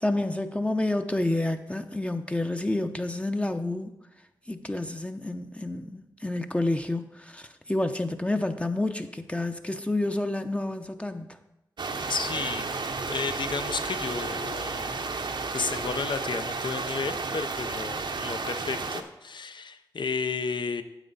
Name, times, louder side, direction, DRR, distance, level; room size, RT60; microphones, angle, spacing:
voice 1, 0.0-3.9 4.5-11.4, left 2 dB, 15° left, 6 dB, 0.7 m, -29 dB
sound 1, 11.8-19.0, right 4 dB, 65° right, 0.8 m, -32 dB
voice 2, 12.1-12.7 13.1-14.9 15.5-20.8, left 5 dB, 65° left, 9 dB, 0.7 m, -32 dB
9.1 x 7.5 x 4.1 m, 0.91 s
cardioid pair, 50°, 9 cm